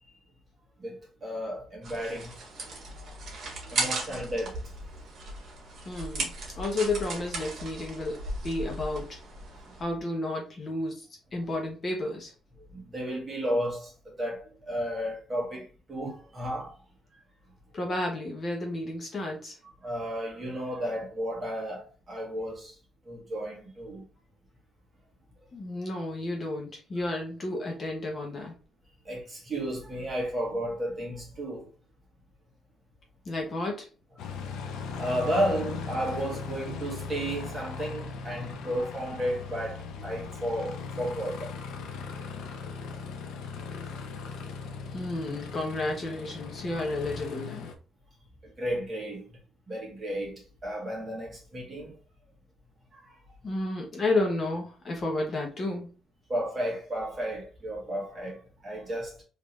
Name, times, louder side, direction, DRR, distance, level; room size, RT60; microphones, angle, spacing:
voice 1, 0.8-2.3 2.9-3.1 3.6-4.6 12.6-16.8 19.8-22.8 23.0-24.0 29.0-31.7 34.4-34.6 35.0-41.5 48.4-49.4 49.7-52.0 52.9-53.1 56.3-59.2, equal, 25° right, 1.5 m, -33 dB
sound 1, 1.8-9.8, right 3 dB, 50° right, 1.5 m, -36 dB
voice 2, 5.8-6.3 6.6-9.2 9.8-11.1 11.3-12.3 17.7-19.6 25.5-28.5 33.2-33.9 44.9-47.7 53.4-55.9, left 2 dB, 30° left, 0.9 m, -31 dB
Aircraft, 34.2-47.7, left 5 dB, 90° left, 0.6 m, -38 dB
3.7 x 2.8 x 3.1 m
cardioid pair, 145°, 0 cm